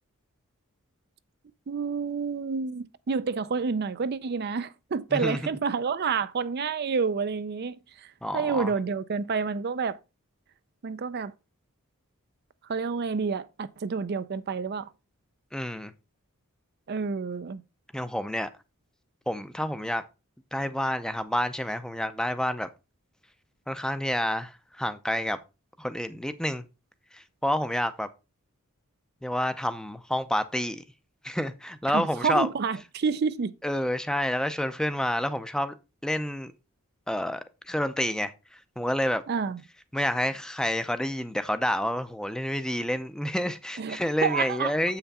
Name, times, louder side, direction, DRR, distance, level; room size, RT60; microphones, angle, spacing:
voice 1, 1.7-10.0 10.8-11.3 12.7-14.9 16.9-17.6 31.9-33.5 39.3-39.6 43.8-44.7, right 5 dB, 45° right, 0.4 m, -29 dB
voice 2, 8.2-8.7 15.5-15.9 17.9-18.5 19.3-20.0 20.5-22.7 23.7-25.4 25.8-26.6 27.1-28.1 29.2-30.8 31.2-32.5 33.6-35.7 36.0-36.5 37.1-39.2 39.9-45.0, left 1 dB, 5° left, 0.5 m, -29 dB
7.8 x 5.8 x 4.1 m
head